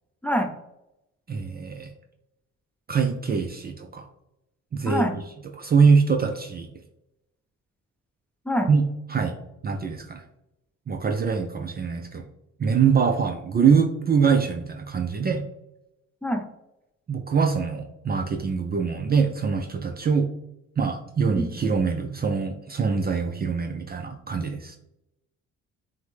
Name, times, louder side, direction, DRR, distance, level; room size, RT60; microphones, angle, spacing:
voice 1, 0.2-0.5 4.8-5.1 8.5-8.7 16.2-16.4 21.4-21.5, equal, 5° left, 4 dB, 0.7 m, -24 dB
voice 2, 1.3-1.9 2.9-4.1 4.7-5.2 5.6-6.7 8.7-8.8 9.1-9.4 9.6-10.2 10.9-12.2 12.6-15.4 17.1-20.3 20.8-24.8, right 5 dB, 30° right, 3 dB, 0.5 m, -23 dB
6.3 x 2.2 x 3.3 m, 0.87 s
cardioid pair, 90°, 30 cm